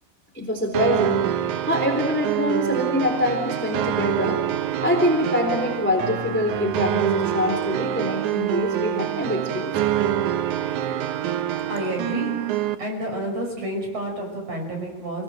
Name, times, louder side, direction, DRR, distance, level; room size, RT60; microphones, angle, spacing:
voice 1, 0.3-1.2 1.6-4.4 4.8-9.7 10.0-10.1, left 1 dB, 5° left, 4 dB, 3.0 m, -24 dB
sound 1, 0.7-12.8, right 11 dB, 85° right, 1.7 m, -26 dB
voice 2, 11.7-12.3 12.8-15.2, right 1 dB, 35° right, 2 dB, 6.5 m, -29 dB
29.0 x 20.5 x 7.7 m, 1.2 s
omnidirectional pair, 4.9 m